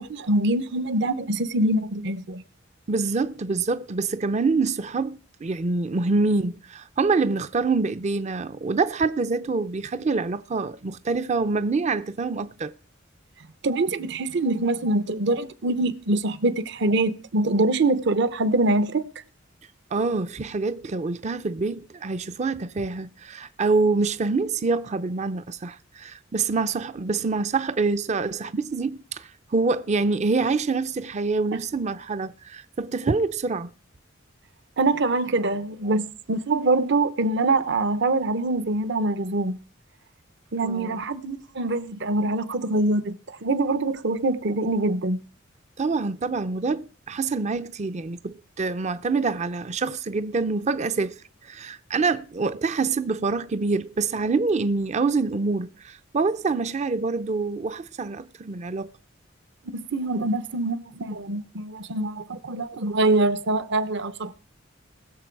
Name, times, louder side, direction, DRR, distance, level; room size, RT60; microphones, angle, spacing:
voice 1, 0.0-2.4 13.6-19.0 31.5-31.6 34.8-39.6 40.5-45.2 59.7-64.3, right 2 dB, 60° right, 0.8 m, -24 dB
voice 2, 2.9-12.7 19.9-33.7 40.6-41.0 45.8-58.9, right 4 dB, 35° right, 0.5 m, -26 dB
20.0 x 6.9 x 4.6 m
head